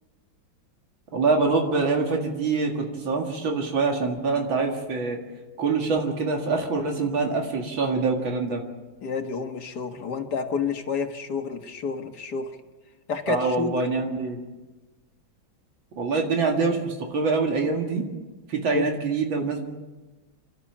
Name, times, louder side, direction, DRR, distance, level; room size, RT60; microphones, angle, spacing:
voice 1, 1.1-5.2 5.6-8.6 13.3-14.4 16.0-18.0 18.5-19.6, right 4 dB, 85° right, 1 dB, 2.9 m, -25 dB
voice 2, 9.0-12.5 13.1-13.7 18.7-18.8, left 5 dB, 60° left, 6 dB, 2.1 m, -29 dB
29.0 x 12.5 x 7.3 m, 1.2 s
omnidirectional pair, 2.1 m